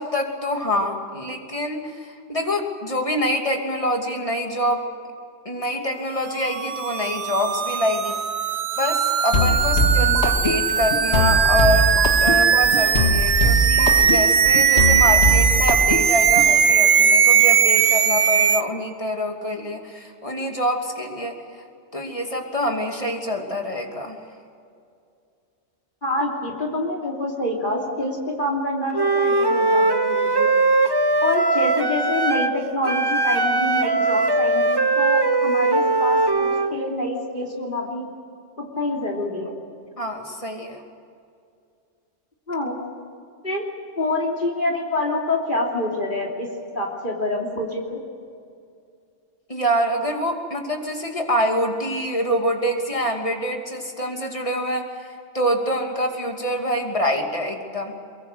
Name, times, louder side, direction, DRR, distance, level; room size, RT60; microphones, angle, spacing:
voice 1, 0.0-4.8 5.4-8.2 8.8-11.9 12.2-21.3 21.9-24.2 40.0-40.8 49.5-55.1 55.3-57.9, equal, 30° left, 2 dB, 2.9 m, -25 dB
sound 1, 6.4-18.6, right 7 dB, 50° right, 0.8 m, -19 dB
sound 2, 9.3-16.5, left 1 dB, 70° left, 2.2 m, -21 dB
voice 2, 26.0-30.5 31.2-38.0 38.6-39.5 42.5-42.8 43.4-43.6 44.0-46.5 46.7-48.0, left 1 dB, 45° left, -1 dB, 3.2 m, -26 dB
Wind instrument woodwind instrument, 28.9-32.6 32.8-36.7, right 3 dB, 25° right, 0.9 m, -20 dB
23.5 x 22.5 x 7.9 m, 2.4 s
omnidirectional pair, 1.2 m